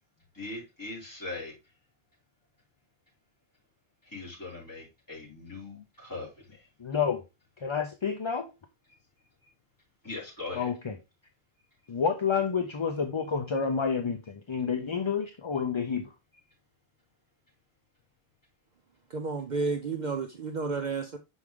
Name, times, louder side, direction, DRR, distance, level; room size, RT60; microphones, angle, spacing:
voice 1, 0.3-1.6 4.1-6.6 10.0-10.7, left 3 dB, 20° left, 4.5 m, -40 dB
voice 2, 6.8-7.2 7.6-8.5 10.5-11.0 11.9-16.1, left 6 dB, 35° left, 0.5 m, -29 dB
voice 3, 19.1-21.2, right 4 dB, 50° right, 0.7 m, -31 dB
6.3 x 4.8 x 3.5 m
omnidirectional pair, 1.0 m